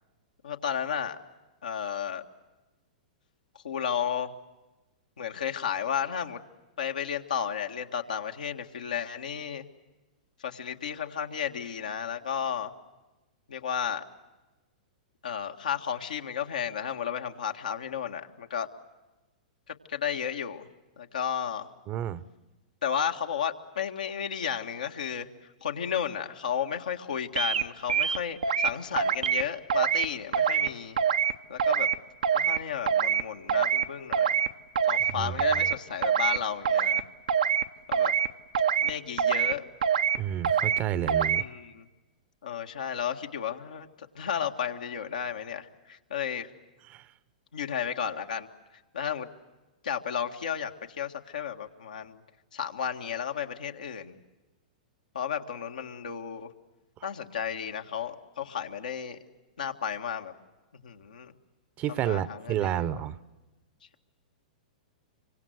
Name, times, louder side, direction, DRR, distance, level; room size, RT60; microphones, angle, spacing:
voice 1, 0.4-1.2 1.6-2.2 3.6-4.3 5.2-6.4 6.8-9.7 10.4-12.7 13.5-14.0 15.2-18.7 19.7-20.7 21.0-21.7 22.8-31.0 31.5-31.9 32.3-34.5 34.9-37.1 37.9-38.1 38.8-39.6 41.4-41.9 42.4-46.5 47.5-48.5 48.9-49.3 49.8-52.2 52.5-54.2 55.1-56.5 57.0-59.2 59.6-60.3 60.8-61.3 61.9-63.0, left 8 dB, 80° left, 4 dB, 1.8 m, -33 dB
voice 2, 21.9-22.2 35.1-35.7 40.2-41.4 46.9-47.1 61.8-63.2, right 11 dB, 35° right, 17 dB, 0.9 m, -31 dB
sound 1, 27.4-27.6 27.9-28.7 29.0-29.4 29.7-30.1 30.3-30.7 31.0-31.3 31.6-31.9 32.2-32.6 32.9-33.2 33.5-33.8 34.1-34.5 34.7-35.1 35.4-35.7 36.0-36.4 36.6-37.0 37.3-37.6 37.9-38.3 38.5-38.9 39.2-39.5 39.8-40.2 40.4-40.8 41.1-41.4, right 8 dB, 75° right, 1.0 m, -24 dB
25.5 x 24.5 x 7.9 m, 1.1 s
hypercardioid pair, 110°, 4 cm